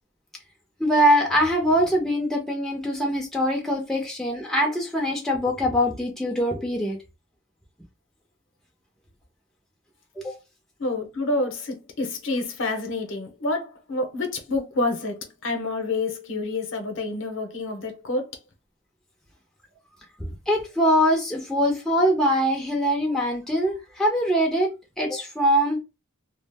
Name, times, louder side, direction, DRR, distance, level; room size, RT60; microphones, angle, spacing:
voice 1, 0.8-7.0 10.2-10.3 20.2-24.7 25.0-25.8, equal, ahead, 0.6 m, -23 dB
voice 2, 10.8-18.3, left 2 dB, 60° left, 0.8 m, -28 dB
2.3 x 2.0 x 3.4 m
head